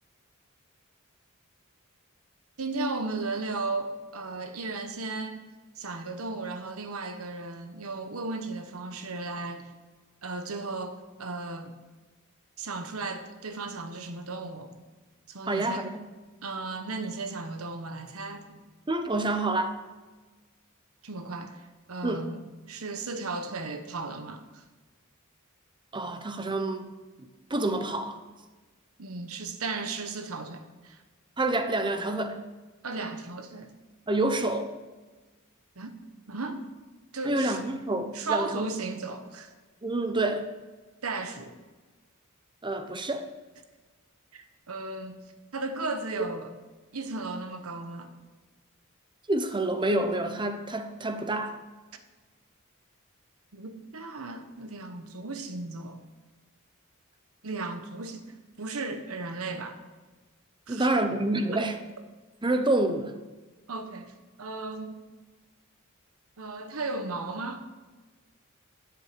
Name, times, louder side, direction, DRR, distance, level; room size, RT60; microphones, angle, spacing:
voice 1, 2.6-5.5 5.8-9.7 10.2-11.7 12.6-14.8 15.3-15.9 16.4-18.6 21.0-21.6 21.9-22.4 22.7-24.6 29.0-31.0 32.8-33.7 35.8-35.9 36.3-36.6 37.1-37.7 38.1-39.5 41.0-41.6 44.3-45.2 45.5-46.5 46.9-48.1 53.5-56.0 57.4-59.8 60.7-60.9 61.5-61.7 63.7-64.1 64.4-65.0 66.4-67.6, right 3 dB, 85° right, 1.1 m, -35 dB
voice 2, 15.5-16.0 18.9-19.8 22.0-22.3 25.9-26.9 27.2-28.2 31.4-32.4 34.1-34.7 37.2-38.7 39.8-40.5 42.6-43.3 49.3-51.6 60.7-61.8 62.4-63.1, right 2 dB, 20° right, 0.8 m, -28 dB
10.5 x 7.5 x 5.1 m
head